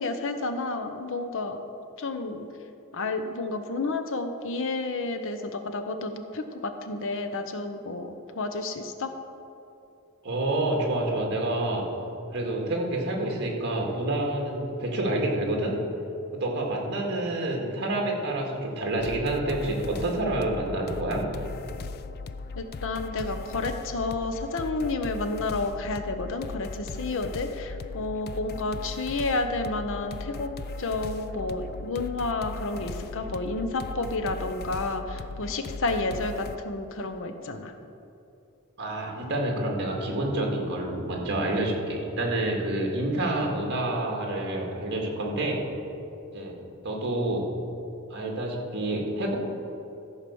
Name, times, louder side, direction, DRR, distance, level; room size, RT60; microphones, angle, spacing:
voice 1, 0.0-1.6 2.0-2.5 2.9-9.1 22.5-30.5 30.8-37.7, left 3 dB, 65° left, 7 dB, 0.8 m, -31 dB
voice 2, 10.2-11.9 12.3-15.8 16.3-21.2 38.8-45.6 46.3-47.5 48.1-49.4, right 1 dB, 55° right, 0 dB, 2.1 m, -28 dB
sound 1, 19.0-36.6, left 3 dB, 45° left, 0.4 m, -38 dB
14.0 x 5.0 x 7.0 m, 2.8 s
head